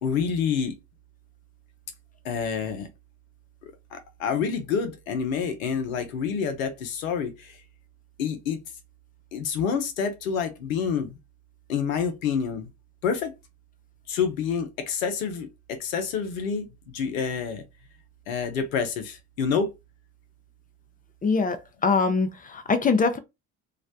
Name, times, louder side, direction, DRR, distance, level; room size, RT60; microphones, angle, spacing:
voice 1, 0.0-0.8 2.2-2.9 3.6-7.6 8.2-8.6 9.3-11.2 11.7-12.7 13.0-13.3 14.1-17.6 18.3-19.7, left 6 dB, 90° left, 0.6 m, -28 dB
voice 2, 21.2-23.2, left 4 dB, 20° left, 0.4 m, -23 dB
2.4 x 2.0 x 2.6 m
hypercardioid pair, 60°, 39 cm